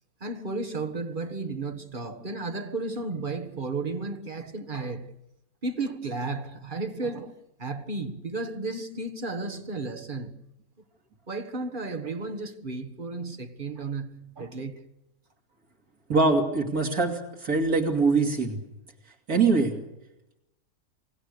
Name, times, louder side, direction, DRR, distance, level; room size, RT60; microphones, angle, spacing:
voice 1, 0.2-5.1 5.6-10.4 11.3-14.8, right 3 dB, 35° right, 1.6 m, -33 dB
voice 2, 16.1-18.6 19.3-19.8, right 3 dB, 75° right, 3.2 m, -23 dB
28.0 x 20.5 x 6.7 m
omnidirectional pair, 1.6 m